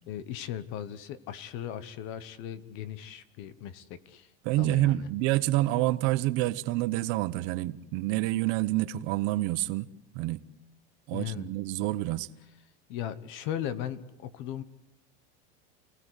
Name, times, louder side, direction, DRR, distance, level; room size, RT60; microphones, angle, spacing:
voice 1, 0.1-4.3 4.6-5.1 11.1-11.5 12.9-14.6, left 10 dB, 40° left, 1.2 m, -37 dB
voice 2, 4.4-9.9 10.1-10.4 11.1-12.3, right 16 dB, 40° right, 0.9 m, -28 dB
29.0 x 18.5 x 8.2 m
supercardioid pair, 180°, 30 cm